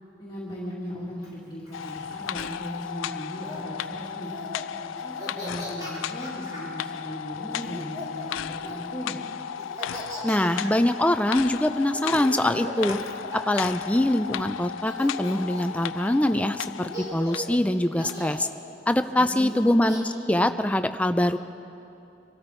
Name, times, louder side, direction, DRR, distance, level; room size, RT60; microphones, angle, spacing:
voice 1, 0.2-4.3 4.8-9.2 19.2-19.6, equal, 25° left, -8 dB, 2.4 m, -37 dB
Laughter, 1.2-3.6 4.2-4.6 5.0-6.7 7.5-9.0 9.6-14.4 14.9-15.8 16.5-16.6 16.9-17.5 17.9-18.5 19.5-20.0, equal, 20° right, 3.4 m, -39 dB
sound 1, 1.7-17.6 18.1-18.2, left 8 dB, 90° left, 0.4 m, -35 dB
voice 2, 10.2-13.0 13.5-18.5 18.9-21.4, left 1 dB, 5° left, 9 dB, 0.4 m, -23 dB
25.0 x 13.0 x 4.5 m, 2.9 s
head